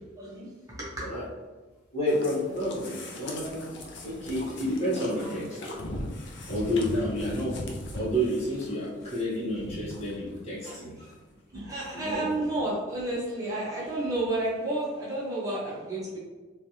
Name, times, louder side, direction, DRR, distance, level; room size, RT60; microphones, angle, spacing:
voice 1, 0.2-1.1 5.2-5.3 6.3-6.5 11.0-11.1 11.5-16.2, right 2 dB, 15° right, -8 dB, 0.7 m, -31 dB
voice 2, 1.9-3.7 4.0-5.6 6.5-11.1 11.9-12.5, equal, 35° left, -9 dB, 1.1 m, -30 dB
sound 1, 2.1-10.4 10.7-10.8 11.3-11.4 11.6-11.7, left 1 dB, 60° left, 0.5 m, -39 dB
3.1 x 2.3 x 2.7 m, 1.3 s
head